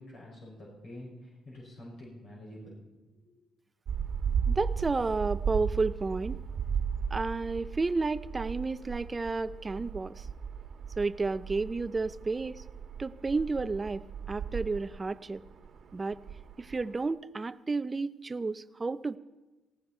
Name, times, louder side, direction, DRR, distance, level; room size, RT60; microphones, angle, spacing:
voice 1, 0.0-2.8 3.3-3.4, left 1 dB, 60° left, -4 dB, 6.2 m, -47 dB
sound 1, 3.9-17.1, right 7 dB, 60° right, 1.4 m, -36 dB
voice 2, 4.5-6.4 7.1-10.3 11.0-12.6 13.0-15.4 15.9-16.2 16.6-19.2, right 3 dB, 25° right, 14 dB, 0.6 m, -31 dB
18.5 x 16.5 x 4.4 m, 1.1 s
cardioid pair, 90°, 0 cm